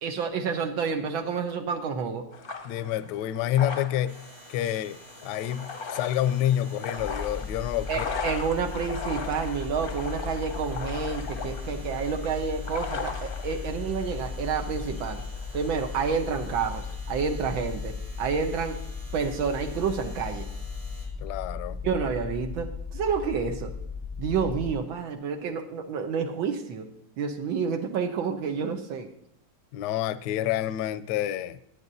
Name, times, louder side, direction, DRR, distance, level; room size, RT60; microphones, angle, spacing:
voice 1, 0.0-2.3 7.9-15.2 15.5-18.8 19.1-20.5 21.8-23.7 24.2-26.9 27.2-29.1, right 6 dB, 85° right, 1.8 m, -29 dB
sound 1, 2.3-17.0, left 5 dB, 45° left, 0.7 m, -39 dB
voice 2, 2.6-4.2 4.5-8.4 21.2-21.8 29.7-31.6, left 12 dB, 75° left, 1.0 m, -28 dB
sound 2, 4.1-21.1, right 1 dB, 70° right, 4.9 m, -50 dB
sound 3, 7.0-24.8, left 5 dB, 20° right, 0.9 m, -36 dB
18.5 x 9.9 x 2.7 m
omnidirectional pair, 2.1 m